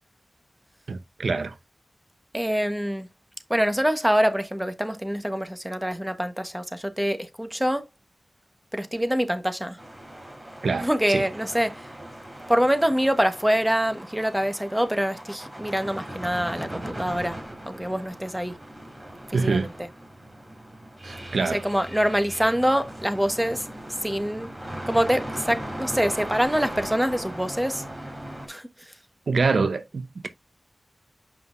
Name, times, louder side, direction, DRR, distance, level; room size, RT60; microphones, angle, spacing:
voice 1, 0.9-1.5 10.6-11.2 19.3-19.7 21.0-21.6 29.3-30.3, right 4 dB, 80° right, 0.8 m, -25 dB
voice 2, 2.3-3.1 3.5-7.9 8.7-9.8 10.8-11.9 12.5-17.4 17.7-18.5 19.3-19.7 21.4-23.7 24.0-24.5 24.9-27.8 28.5-28.7, equal, 5° right, 1.2 m, -25 dB
sound 1, 9.8-28.5, right 1 dB, 30° right, 3.4 m, -39 dB
7.5 x 5.7 x 2.6 m
wide cardioid pair, 70°, 0 cm